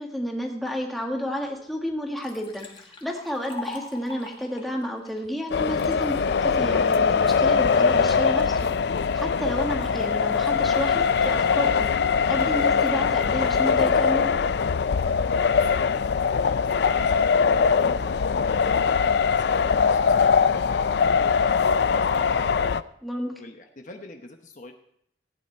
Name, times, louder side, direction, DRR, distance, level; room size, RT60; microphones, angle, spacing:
voice 1, 0.0-11.9 12.3-14.3 23.0-23.4, equal, ahead, 0 dB, 1.6 m, -31 dB
Liquid, 1.4-1.5 1.9-5.9 6.5-6.9, left 3 dB, 30° left, 1.5 m, -42 dB
sound 1, 5.5-22.8, left 6 dB, 65° left, 0.4 m, -22 dB
voice 2, 15.5-22.7 23.4-24.7, left 2 dB, 45° left, 4 dB, 1.0 m, -45 dB
15.5 x 9.3 x 4.4 m, 0.71 s
head